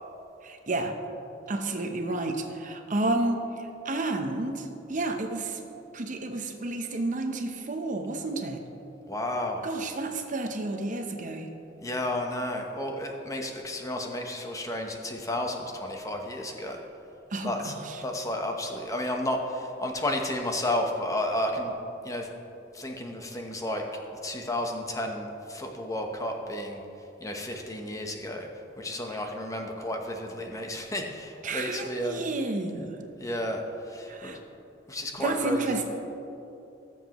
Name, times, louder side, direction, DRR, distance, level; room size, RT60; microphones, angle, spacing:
voice 1, 0.4-0.9 1.5-5.6 5.9-8.6 9.6-11.5 17.3-18.0 29.1-29.2 31.4-33.1 34.1-34.4 35.2-35.9, right 2 dB, 45° right, 5 dB, 0.8 m, -31 dB
voice 2, 9.1-9.6 11.8-16.8 17.4-17.7 18.0-21.7 22.0-22.3 22.7-23.9 24.2-26.8 27.2-28.5 28.8-32.2 33.2-33.6 33.9-34.3 34.9-35.7, left 1 dB, 20° left, 3 dB, 0.9 m, -32 dB
19.0 x 7.3 x 3.0 m, 2.9 s
head